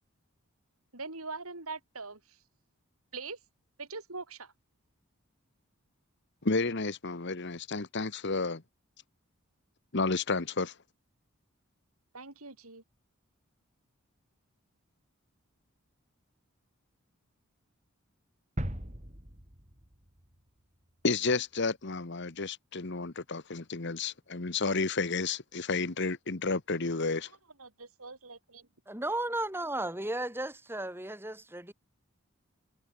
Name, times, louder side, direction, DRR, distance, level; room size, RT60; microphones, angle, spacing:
voice 1, 0.9-2.4 3.1-3.4 3.8-4.5 12.1-12.8 27.6-28.7, right 3 dB, 85° right, 6.4 m, -42 dB
voice 2, 6.4-8.6 9.9-10.7 21.0-27.3, left 3 dB, 55° left, 1.3 m, -31 dB
sound 1, 18.6-20.5 20.9-21.0, equal, 35° right, 4.9 m, -39 dB
voice 3, 28.9-31.7, right 1 dB, 10° right, 4.2 m, -34 dB
head